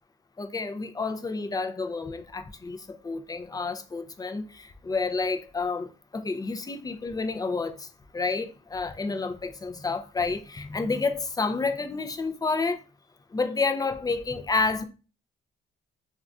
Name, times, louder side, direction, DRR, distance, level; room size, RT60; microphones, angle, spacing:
voice 1, 0.4-5.9 6.1-7.9 8.1-12.8 13.3-14.8, left 4 dB, 20° left, 0.4 m, -29 dB
3.6 x 2.3 x 2.4 m
cardioid pair, 90°, 20 cm